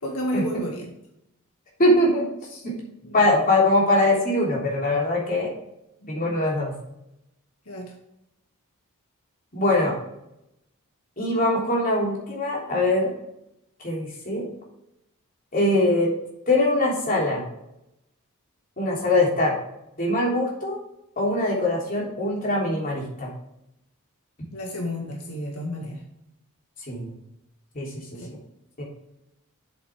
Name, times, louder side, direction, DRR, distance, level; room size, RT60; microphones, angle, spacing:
voice 1, 0.0-0.8 3.0-3.1 6.0-6.5 7.7-7.9 24.5-26.0 28.1-28.3, left 1 dB, 85° left, 0 dB, 1.9 m, -31 dB
voice 2, 1.8-2.7 3.1-5.5 6.1-6.7 9.5-9.9 11.2-13.1 13.8-14.4 15.5-16.1 16.5-17.4 18.8-19.5 20.0-20.8 21.2-23.3 26.9-27.1 27.7-28.0 28.8-28.9, left 1 dB, 40° left, -3 dB, 3.3 m, -22 dB
8.2 x 7.6 x 3.5 m, 0.83 s
head